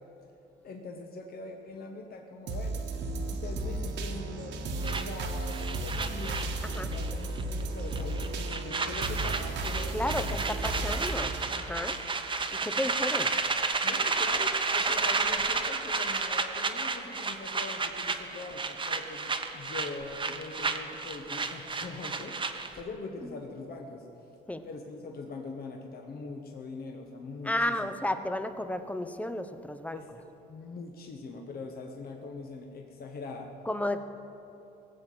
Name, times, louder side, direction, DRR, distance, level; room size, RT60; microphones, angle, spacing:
voice 1, 0.6-2.8 3.2-10.4 10.8-11.1 13.8-24.1 24.6-27.9 29.9-30.1 30.5-33.5, left 3 dB, 50° left, 2 dB, 1.4 m, -42 dB
sound 1, 2.5-12.5 13.0-13.1, right 2 dB, 70° right, 1.6 m, -34 dB
sound 2, 4.8-7.1 7.4-7.6 7.9-22.8, right 4 dB, 25° right, 1.1 m, -31 dB
voice 2, 6.6-6.9 9.9-12.0 12.5-13.3 23.2-23.5 24.5-24.6 27.4-30.2 33.6-34.0, left 1 dB, 5° left, 10 dB, 0.8 m, -33 dB
19.0 x 7.5 x 7.8 m, 2.9 s
cardioid pair, 105°, 20 cm